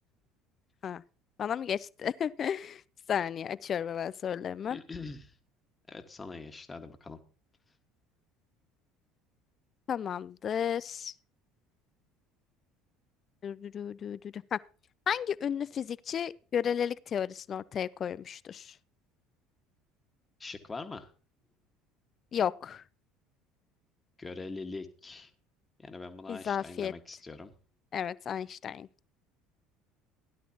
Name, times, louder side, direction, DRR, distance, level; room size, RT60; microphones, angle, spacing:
voice 1, 1.4-2.8 3.1-4.8 9.9-11.1 13.4-14.6 15.1-18.7 22.3-22.8 26.3-26.9 27.9-28.9, left 8 dB, 40° left, 0.5 m, -33 dB
voice 2, 4.7-5.4 5.9-7.2 20.4-21.1 24.2-25.3 25.8-27.5, left 3 dB, 20° left, 1.7 m, -43 dB
16.5 x 11.0 x 3.0 m
hypercardioid pair, 65°, 0 cm